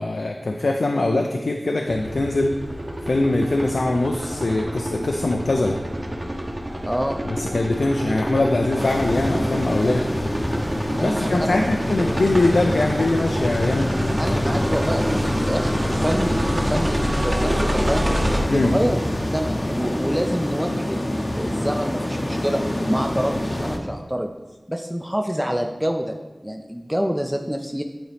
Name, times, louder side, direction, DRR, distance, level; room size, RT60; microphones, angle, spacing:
voice 1, 0.0-2.5 3.0-5.8 7.3-10.1 11.0-13.9 14.5-14.6 18.5-18.7, left 2 dB, 90° left, 2 dB, 0.4 m, -22 dB
sound 1, 1.9-18.4, equal, 30° right, 0.9 m, -27 dB
voice 2, 6.8-7.2 10.9-11.6 14.2-18.1 18.5-19.0 19.3-22.6 22.9-24.3 24.7-26.1 26.4-27.8, equal, 5° right, 4 dB, 0.4 m, -26 dB
sound 2, 8.8-23.8, left 1 dB, 40° left, 0.7 m, -27 dB
8.9 x 4.0 x 3.4 m, 1.2 s
wide cardioid pair, 60°, 0 cm